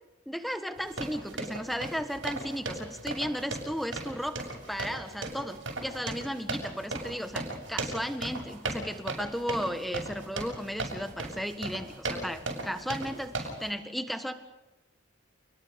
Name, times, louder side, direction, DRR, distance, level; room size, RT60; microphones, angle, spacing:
voice 1, 0.2-14.3, equal, ahead, 8 dB, 1.6 m, -35 dB
sound 1, 0.8-13.7, right 2 dB, 85° right, 6.6 m, -37 dB
29.0 x 21.0 x 5.3 m, 1.1 s
head